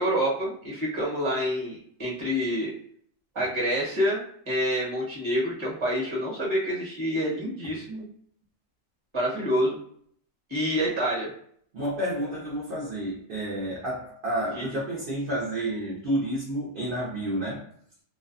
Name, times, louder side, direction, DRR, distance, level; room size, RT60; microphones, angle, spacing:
voice 1, 0.0-2.7 3.3-8.0 9.1-9.8 10.5-11.3 14.5-14.6, equal, 25° right, 0.9 m, -27 dB
voice 2, 11.7-17.7, right 1 dB, 50° right, 0.7 m, -30 dB
2.6 x 2.1 x 2.4 m
omnidirectional pair, 1.4 m